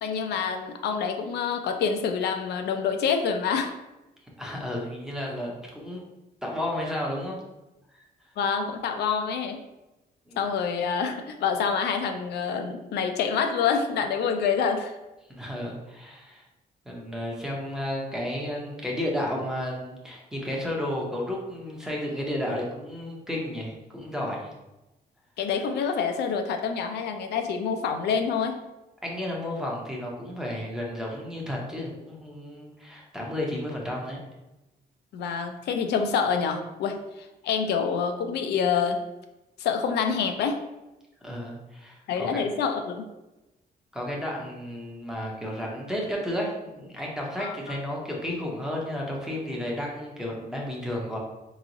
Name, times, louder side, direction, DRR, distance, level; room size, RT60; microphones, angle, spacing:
voice 1, 0.0-3.7 8.4-9.6 10.4-14.9 25.4-28.6 35.1-37.0 37.4-39.0 39.6-40.6 42.1-43.1 47.4-47.6, left 6 dB, 90° left, 5 dB, 0.5 m, -27 dB
voice 2, 4.4-6.0 6.4-7.4 7.9-8.0 10.3-10.4 15.3-16.4 16.9-24.5 29.0-34.2 41.2-42.4 43.9-51.2, left 1 dB, 5° right, -2 dB, 0.6 m, -32 dB
4.7 x 3.0 x 2.6 m, 1.0 s
cardioid pair, 180°, 17 cm